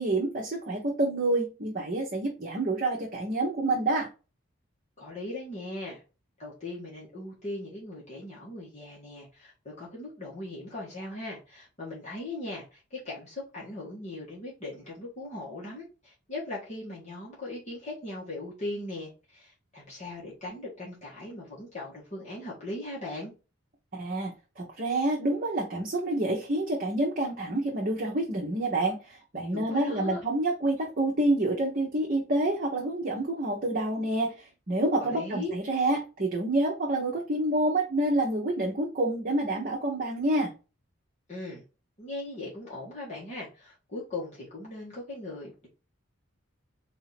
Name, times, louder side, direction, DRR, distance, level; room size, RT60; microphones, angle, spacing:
voice 1, 0.0-4.1 23.9-40.5, right 2 dB, 40° right, -1 dB, 0.9 m, -28 dB
voice 2, 5.0-6.0 6.4-23.3 29.5-30.2 35.0-35.5 41.3-41.6 42.0-45.7, left 2 dB, 35° left, -5 dB, 1.6 m, -39 dB
4.1 x 2.7 x 4.1 m, 0.31 s
head